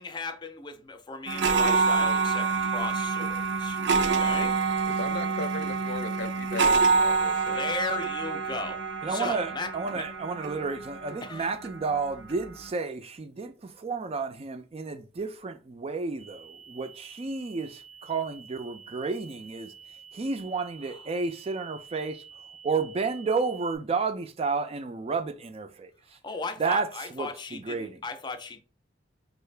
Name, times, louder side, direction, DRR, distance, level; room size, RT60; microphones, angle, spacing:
voice 1, 0.0-4.6 7.4-8.8 9.1-10.1 11.2-11.5 20.8-21.1 26.2-28.6, left 4 dB, 25° left, 0.5 m, -36 dB
sound 1, 1.3-12.6, right 4 dB, 85° right, 0.5 m, -27 dB
voice 2, 5.0-7.6 7.9-8.0, left 3 dB, 65° left, 0.7 m, -37 dB
voice 3, 9.0-17.7 18.1-19.7 20.1-22.2 22.6-25.9 26.6-26.9 27.2-28.0, right 4 dB, 35° right, 0.4 m, -31 dB
sound 2, 16.2-23.8, right 6 dB, 5° right, 0.8 m, -49 dB
4.6 x 2.5 x 3.2 m
head